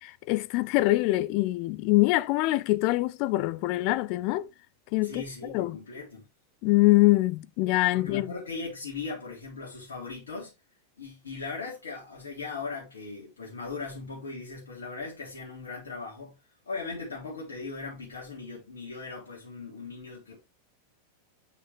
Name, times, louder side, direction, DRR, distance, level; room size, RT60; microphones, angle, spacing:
voice 1, 0.3-4.5 4.9-5.2 5.5-5.8 6.6-8.3, left 19 dB, 45° left, 0.6 m, -24 dB
voice 2, 5.0-6.3 7.9-10.5 11.0-16.3 16.7-20.4, left 4 dB, 65° left, 3.5 m, -38 dB
8.0 x 6.7 x 3.3 m
figure-of-eight pair, 90°, 0 cm